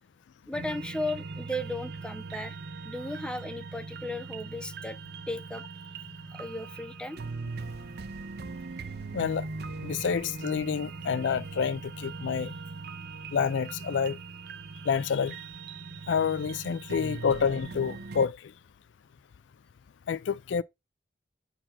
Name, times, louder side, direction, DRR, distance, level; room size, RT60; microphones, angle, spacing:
voice 1, 0.5-2.6 2.8-5.0 5.3-5.9 6.3-7.2, left 1 dB, 5° left, 0.7 m, -35 dB
sound 1, 0.5-18.3, right 4 dB, 60° right, 0.6 m, -40 dB
voice 2, 9.1-9.5 9.8-12.6 13.3-14.2 14.9-15.4 16.1-18.5 20.1-20.6, left 6 dB, 85° left, 0.4 m, -28 dB
9.0 x 4.2 x 4.1 m
head